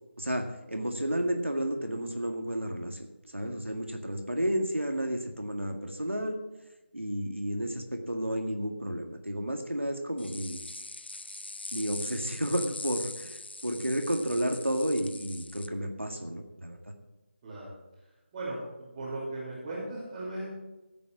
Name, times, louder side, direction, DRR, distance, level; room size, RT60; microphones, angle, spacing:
voice 1, 0.2-3.1 3.3-6.4 6.9-10.6 11.7-16.8, equal, 90° right, 4 dB, 1.9 m, -32 dB
sound 1, 10.2-15.7, left 2 dB, 60° left, 0.7 m, -41 dB
voice 2, 18.9-20.6, right 2 dB, 20° right, -10 dB, 3.3 m, -37 dB
15.5 x 8.3 x 4.8 m, 1.1 s
figure-of-eight pair, 160°, 6 cm